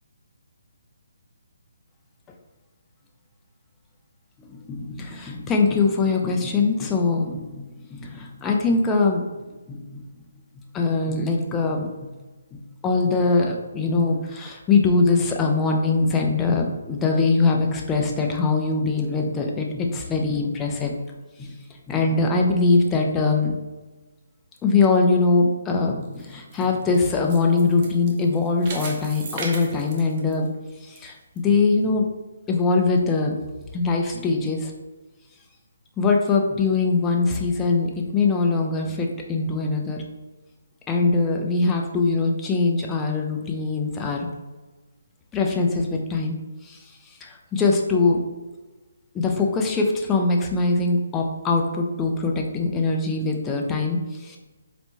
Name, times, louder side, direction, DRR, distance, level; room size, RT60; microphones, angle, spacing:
voice 1, 4.4-9.2 9.7-10.1 10.7-12.1 12.5-21.0 21.4-21.5 21.9-23.5 24.6-30.5 30.8-32.0 32.5-33.4 33.7-34.7 36.0-40.0 40.9-44.3 45.3-46.3 46.6-46.8 47.2-48.2 49.1-54.4, left 3 dB, 15° left, 1 dB, 0.4 m, -22 dB
sound 1, 26.0-31.0 31.4-31.5 32.1-32.2, right 4 dB, 35° right, 0.6 m, -38 dB
4.0 x 2.2 x 3.0 m, 1.2 s
figure-of-eight pair, 145°, 0 cm